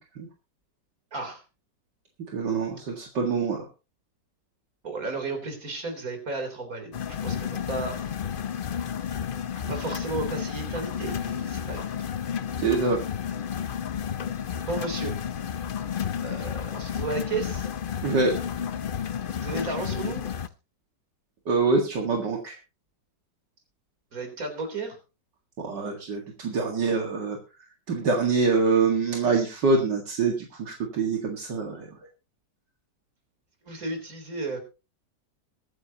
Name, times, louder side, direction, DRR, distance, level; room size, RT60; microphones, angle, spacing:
voice 1, 1.1-1.4 4.8-8.1 9.7-11.9 14.7-15.1 16.2-17.7 19.4-20.2 24.1-25.0 33.6-34.6, right 3 dB, 50° right, 5 dB, 4.0 m, -33 dB
voice 2, 2.3-3.7 12.6-13.0 18.0-18.4 21.5-22.6 25.6-27.4 27.9-31.9, right 4 dB, 75° right, 2 dB, 2.5 m, -25 dB
sound 1, 6.9-20.5, left 8 dB, 60° left, 0.5 m, -31 dB
23.0 x 9.2 x 2.9 m, 0.30 s
omnidirectional pair, 1.9 m